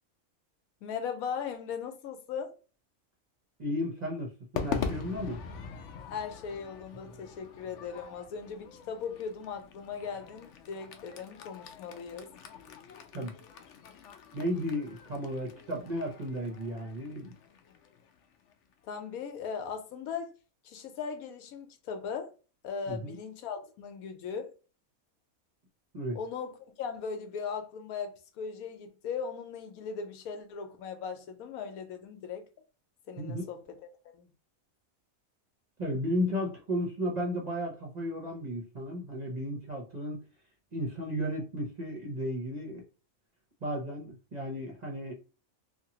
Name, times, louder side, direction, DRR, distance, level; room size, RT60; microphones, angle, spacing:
voice 1, 0.8-2.6 6.1-12.3 18.8-20.4 20.6-22.3 22.6-24.5 26.1-32.4 33.1-33.6 34.0-34.3, left 6 dB, 85° left, 1.1 m, -38 dB
voice 2, 3.6-5.4 13.1-13.3 14.3-17.3 22.9-23.2 25.9-26.2 33.2-33.5 35.8-40.2 40.7-42.8 43.6-45.1, equal, 40° right, 0.7 m, -34 dB
Crowd / Fireworks, 4.5-18.9, left 6 dB, 65° left, 0.8 m, -42 dB
2.8 x 2.5 x 2.8 m
omnidirectional pair, 1.5 m